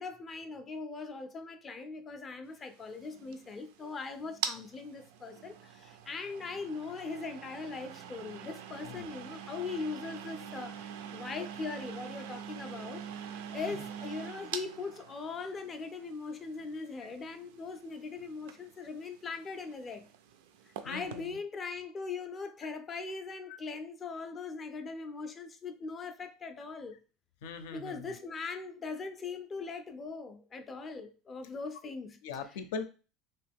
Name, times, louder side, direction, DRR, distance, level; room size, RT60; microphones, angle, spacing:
voice 1, 0.0-20.1 20.8-27.0 27.7-32.2, left 4 dB, 20° left, 0.4 m, -40 dB
sound 1, 2.6-21.3, right 8 dB, 85° right, 0.4 m, -45 dB
voice 2, 20.8-21.4 23.5-23.6 27.4-28.2 32.2-32.8, left 5 dB, 85° left, 0.5 m, -41 dB
2.9 x 2.8 x 3.4 m
cardioid pair, 170°, 0 cm